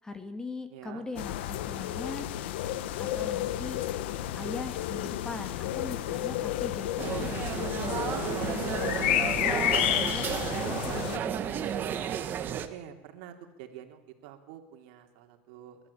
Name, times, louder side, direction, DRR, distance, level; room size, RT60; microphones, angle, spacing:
voice 1, 0.0-2.3 3.0-3.8 4.4-8.1 8.4-12.2, left 3 dB, 10° left, 8 dB, 2.3 m, -40 dB
voice 2, 0.7-1.1 12.5-15.8, right 10 dB, 70° right, 5 dB, 3.2 m, -47 dB
sound 1, 1.2-11.2, left 12 dB, 80° left, 1.2 m, -31 dB
sound 2, 7.0-12.7, right 9 dB, 35° right, 1.9 m, -32 dB
29.5 x 13.5 x 8.6 m, 0.99 s
supercardioid pair, 135°, 6 cm